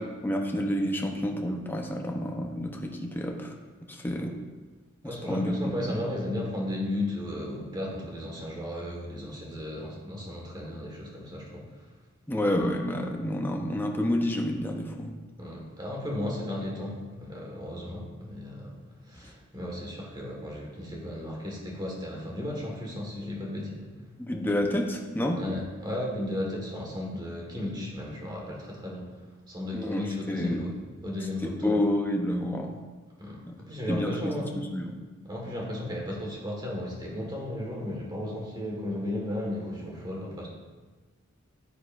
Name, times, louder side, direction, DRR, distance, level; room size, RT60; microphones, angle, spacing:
voice 1, 0.0-3.6 3.9-4.4 5.0-6.0 12.3-15.1 19.2-19.3 24.2-25.6 29.7-30.6 31.2-32.8 33.5-33.6 33.9-35.0, left 1 dB, 10° left, 1 dB, 0.8 m, -29 dB
voice 2, 5.0-11.7 15.4-18.8 19.1-23.9 25.3-29.2 29.5-30.8 31.0-31.7 33.2-34.5 35.2-40.5, left 1 dB, 20° right, -2 dB, 1.7 m, -35 dB
9.4 x 8.4 x 2.6 m, 1.3 s
head